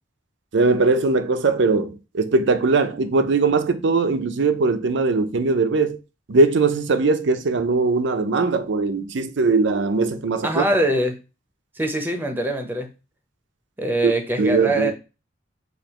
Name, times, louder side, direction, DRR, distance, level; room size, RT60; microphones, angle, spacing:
voice 1, 0.5-6.0 6.3-10.6 14.0-14.1 14.4-14.9, right 3 dB, 65° right, 0.5 m, -20 dB
voice 2, 10.4-11.1 11.8-12.9 13.8-14.9, right 1 dB, 10° right, 0.8 m, -23 dB
6.7 x 2.5 x 3.0 m
head